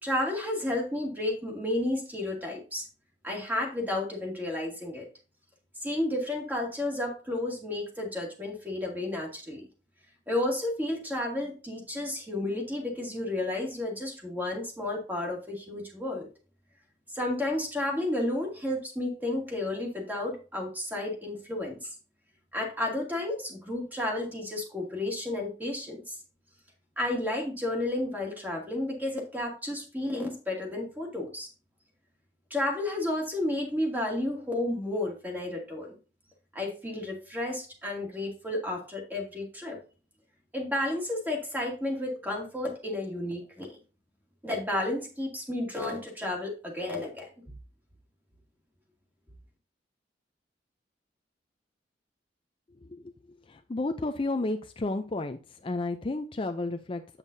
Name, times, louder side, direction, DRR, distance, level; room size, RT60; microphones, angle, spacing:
voice 1, 0.0-2.9 3.2-5.1 5.8-9.6 10.3-16.3 17.1-22.0 22.5-26.2 27.0-31.5 32.5-36.0 36.5-39.8 40.5-43.8 44.4-47.3, left 1 dB, 10° right, 0 dB, 2.2 m, -32 dB
voice 2, 53.5-57.2, left 2 dB, 30° left, 7 dB, 0.5 m, -32 dB
8.2 x 7.2 x 2.6 m, 0.35 s
head